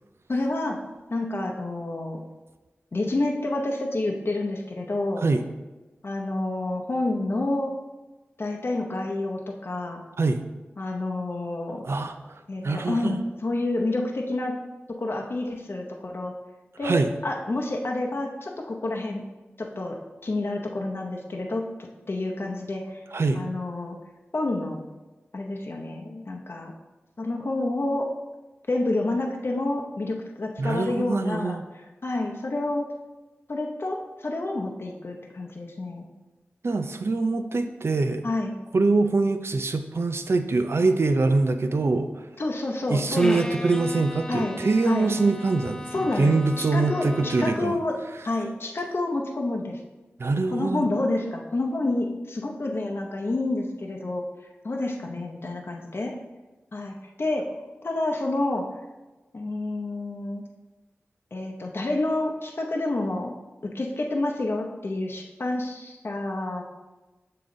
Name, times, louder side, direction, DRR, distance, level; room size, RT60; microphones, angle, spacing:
voice 1, 0.3-0.8 1.1-2.2 2.9-5.2 6.0-7.7 8.4-10.0 10.8-11.8 12.5-14.5 15.0-16.3 16.8-19.2 19.6-21.6 22.1-23.0 23.3-24.0 24.3-24.9 25.3-26.7 27.2-28.1 28.7-31.6 32.0-32.9 33.5-36.1 38.2-38.5 42.4-43.7 44.3-44.6 44.9-45.1 45.9-48.0 48.2-49.8 50.5-54.2 54.6-56.1 56.7-58.6 59.3-60.4 61.3-63.3 63.6-66.6, left 2 dB, 55° left, 1 dB, 0.7 m, -29 dB
voice 2, 11.8-12.2 12.6-13.2 16.8-17.1 23.1-23.4 30.6-31.6 36.6-38.2 38.7-42.3 42.9-47.8 50.2-50.9, right 3 dB, 65° right, 8 dB, 0.5 m, -24 dB
Bowed string instrument, 43.2-47.8, left 1 dB, 15° left, 0.5 m, -38 dB
6.9 x 3.8 x 3.8 m, 1.1 s
cardioid pair, 45°, 5 cm